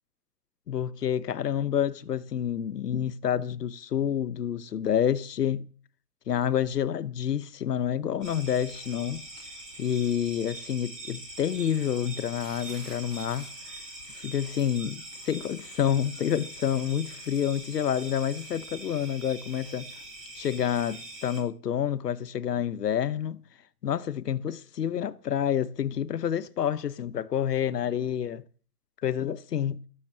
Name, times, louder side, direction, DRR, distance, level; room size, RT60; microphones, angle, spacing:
voice 1, 0.7-5.6 6.3-9.2 9.8-13.5 14.1-19.9 20.4-23.4 23.8-28.4 29.0-29.8, left 9 dB, 85° left, 1.1 m, -28 dB
sound 1, 8.2-21.4, right 2 dB, 5° right, 0.7 m, -43 dB
16.5 x 6.8 x 7.6 m
hypercardioid pair, 175°, 47 cm